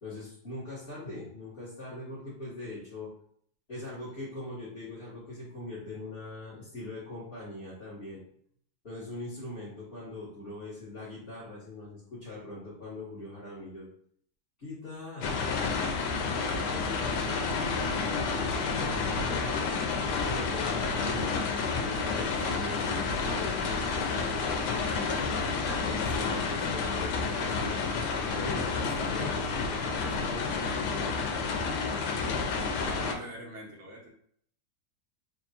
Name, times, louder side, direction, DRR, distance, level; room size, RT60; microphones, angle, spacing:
voice 1, 0.0-3.1 3.7-8.2 8.8-13.9 14.6-19.6 20.1-25.3 25.8-27.9 28.3-31.1, left 2 dB, 35° left, -12 dB, 1.6 m, -41 dB
sound 1, 15.2-33.1, left 4 dB, 85° left, 1.2 m, -30 dB
voice 2, 32.2-32.5 32.9-34.1, right 1 dB, 50° right, -2 dB, 1.1 m, -44 dB
3.5 x 2.3 x 4.1 m, 0.63 s
omnidirectional pair, 1.8 m